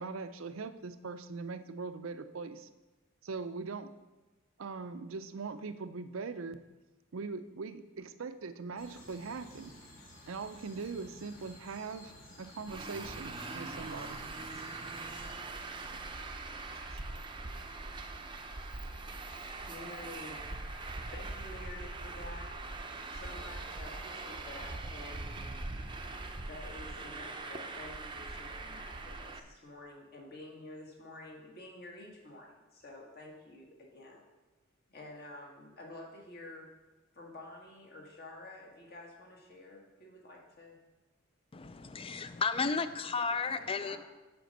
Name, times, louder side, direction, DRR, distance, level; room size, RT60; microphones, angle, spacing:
voice 1, 0.0-2.7 3.2-3.9 4.6-6.6 7.1-9.7 10.3-14.2 16.7-17.0, right 4 dB, 70° right, 12 dB, 0.5 m, -41 dB
sound 1, 8.7-15.3, left 1 dB, 65° left, 2.9 m, -54 dB
Traffic noise roadway noise, 12.7-29.4, right 3 dB, 25° right, 0.6 m, -42 dB
voice 2, 19.7-20.4 21.1-22.6 23.1-25.3 26.5-34.3 34.9-36.7 37.1-40.8 43.3-44.0, left 2 dB, 50° left, 0 dB, 1.7 m, -49 dB
voice 3, 41.5-44.0, left 4 dB, 25° left, 12 dB, 0.4 m, -33 dB
7.7 x 5.1 x 6.6 m, 1.1 s
head